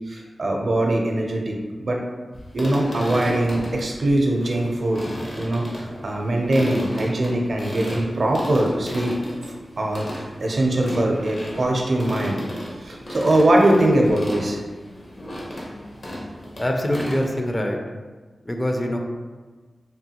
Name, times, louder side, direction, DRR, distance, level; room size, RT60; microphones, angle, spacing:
voice 1, 0.1-2.0 2.5-5.1 5.4-9.1 9.8-12.4 12.8-14.6, right 1 dB, 65° right, 0 dB, 0.5 m, -22 dB
sound 1, 2.3-17.5, equal, 55° left, 0.8 m, -34 dB
voice 2, 16.6-17.8 18.5-19.0, left 1 dB, 25° left, 2 dB, 0.4 m, -24 dB
3.5 x 2.2 x 2.8 m, 1.4 s
cardioid pair, 50°, 0 cm